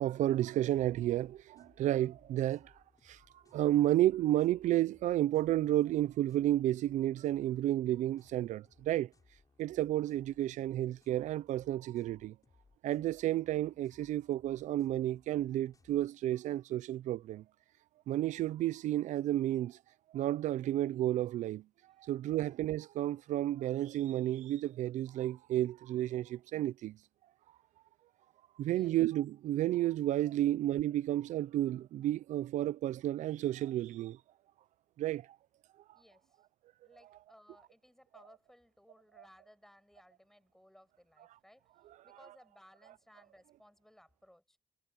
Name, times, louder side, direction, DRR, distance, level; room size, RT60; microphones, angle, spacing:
voice 1, 0.0-2.7 3.1-3.2 3.5-9.1 9.6-12.3 12.8-17.4 18.1-19.8 20.1-21.6 22.0-27.0 28.6-34.2 35.0-35.3, right 13 dB, 80° right, 0.5 m, -31 dB
sound 1, 1.1-16.1, left 4 dB, 30° left, 7.6 m, -67 dB
voice 2, 28.6-29.0 35.9-36.4 36.8-41.7 42.0-44.6, equal, 5° left, 6.6 m, -62 dB
cardioid pair, 110°, 12 cm